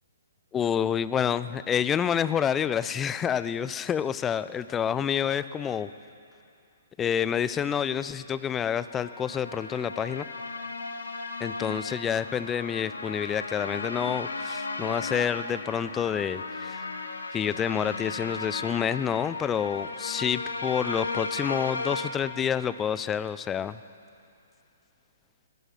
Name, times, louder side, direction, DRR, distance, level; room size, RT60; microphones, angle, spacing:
voice 1, 0.5-5.9 7.0-10.3 11.4-16.8 17.3-23.8, left 8 dB, 15° left, 15 dB, 0.4 m, -28 dB
sound 1, 8.7-22.1, left 3 dB, 70° left, 1.1 m, -35 dB
19.0 x 11.0 x 6.3 m, 2.6 s
figure-of-eight pair, 125°, 0 cm